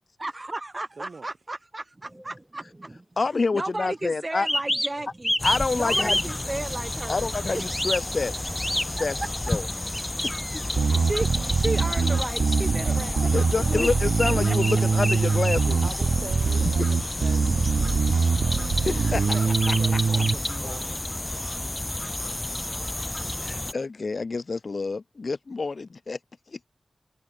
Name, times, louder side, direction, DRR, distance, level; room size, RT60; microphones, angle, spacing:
voice 1, 0.2-3.0 3.5-5.3 5.8-7.3 7.5-7.6 10.9-11.3 11.5-13.2 14.5-14.6, right 2 dB, 25° right, 2.8 m, -33 dB
voice 2, 1.0-1.3 12.8-13.0 15.8-18.0 19.3-21.1, right 4 dB, 55° right, 2.2 m, -42 dB
sound 1, 2.2-2.3 4.4-5.6 5.9-6.2 7.6-8.0 8.4-8.9 9.9-10.7 13.8-13.9 14.2-15.2 15.5-15.6 15.9-16.1 17.1-18.2 19.6-19.8 20.2-20.3, equal, 5° left, 0.4 m, -28 dB
voice 3, 3.2-4.5 5.4-6.2 7.1-8.3 9.0-9.7 13.3-15.8 18.8-20.0 23.4-26.2 26.5-26.6, left 4 dB, 50° left, 1.0 m, -28 dB
sound 2, 5.4-23.7, left 1 dB, 20° left, 1.0 m, -31 dB
Bass guitar, 10.8-20.3, right 5 dB, 70° right, 0.7 m, -23 dB
wide cardioid pair, 115°, 0 cm